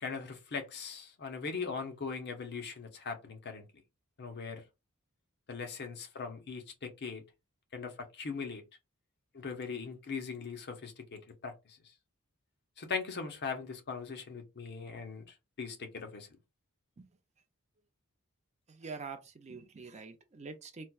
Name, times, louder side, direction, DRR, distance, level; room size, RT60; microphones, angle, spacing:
voice 1, 0.0-3.7 4.2-4.6 5.5-7.2 7.7-8.6 9.3-11.8 12.8-16.3, left 5 dB, 50° left, 0.7 m, -40 dB
voice 2, 18.7-20.9, right 4 dB, 30° right, 0.5 m, -45 dB
4.2 x 2.2 x 2.3 m
head